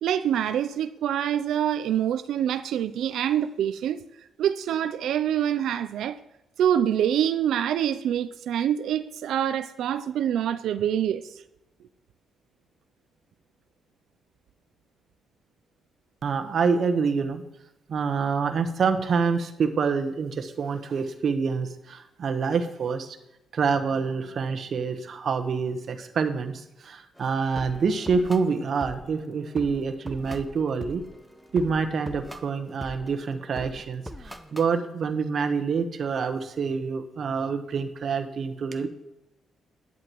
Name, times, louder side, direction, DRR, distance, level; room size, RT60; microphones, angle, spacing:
voice 1, 0.0-4.0 4.4-6.2 6.6-11.2, right 10 dB, 75° right, 0.4 m, -25 dB
voice 2, 16.2-17.4 17.9-23.2 23.5-31.0 31.5-38.9, right 5 dB, 55° right, 1.0 m, -27 dB
sound 1, 27.2-34.7, equal, ahead, 0.8 m, -43 dB
11.0 x 10.5 x 3.0 m
cardioid pair, 90°, 0 cm